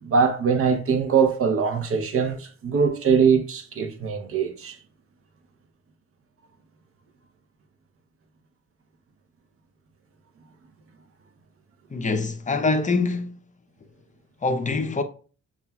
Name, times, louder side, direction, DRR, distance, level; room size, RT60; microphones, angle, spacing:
voice 1, 0.0-4.8, right 6 dB, 45° right, 0.7 m, -22 dB
voice 2, 11.9-13.4 14.4-15.0, left 3 dB, 25° left, 0.6 m, -24 dB
6.6 x 2.4 x 2.3 m
cardioid pair, 90°, 30 cm